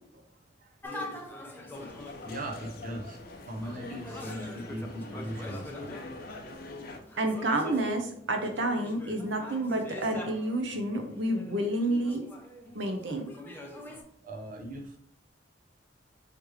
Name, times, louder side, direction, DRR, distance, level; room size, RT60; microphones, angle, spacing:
sound 1, 0.8-2.6 3.6-6.2 6.9-14.0, left 1 dB, 10° left, 0.7 m, -43 dB
voice 1, 1.3-1.8 2.2-3.2 3.5-6.2 14.2-15.0, right 1 dB, 50° right, 1 dB, 0.7 m, -40 dB
sound 2, 1.7-7.0, left 2 dB, 55° left, 0.7 m, -44 dB
voice 2, 7.2-12.3 12.7-13.3, right 1 dB, 85° right, 5 dB, 0.8 m, -29 dB
5.0 x 3.2 x 3.1 m, 0.65 s
head